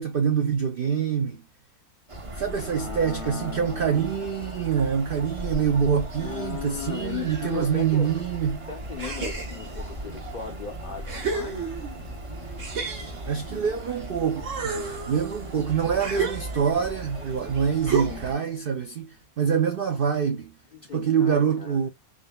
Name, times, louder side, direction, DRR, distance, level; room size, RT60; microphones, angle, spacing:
voice 1, 0.0-1.4 2.4-8.6 13.3-20.5 20.9-21.9, right 7 dB, 75° right, 0.5 m, -25 dB
sound 1, 2.1-18.3, right 1 dB, 30° right, 0.6 m, -37 dB
voice 2, 2.5-4.1 6.2-8.1 8.7-11.7 17.9-18.2 20.7-21.9, left 7 dB, 65° left, 0.4 m, -37 dB
sound 2, 9.0-9.8 10.5-10.6 11.1-12.1 12.6-14.0 14.3-16.9 17.9-18.4, right 4 dB, 60° right, 1.3 m, -32 dB
4.0 x 3.7 x 2.2 m
omnidirectional pair, 1.6 m